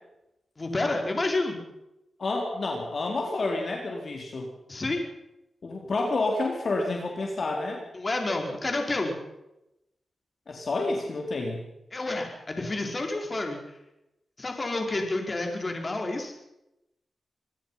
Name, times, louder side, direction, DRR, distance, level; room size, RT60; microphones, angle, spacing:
voice 1, 0.6-1.6 4.7-5.0 7.9-9.1 11.9-13.6 14.4-16.3, left 2 dB, 35° left, 3 dB, 5.1 m, -29 dB
voice 2, 2.2-4.5 5.6-7.8 10.5-11.6, left 2 dB, 55° left, 1 dB, 4.2 m, -29 dB
26.5 x 18.5 x 5.9 m, 0.88 s
cardioid pair, 90°, 0 cm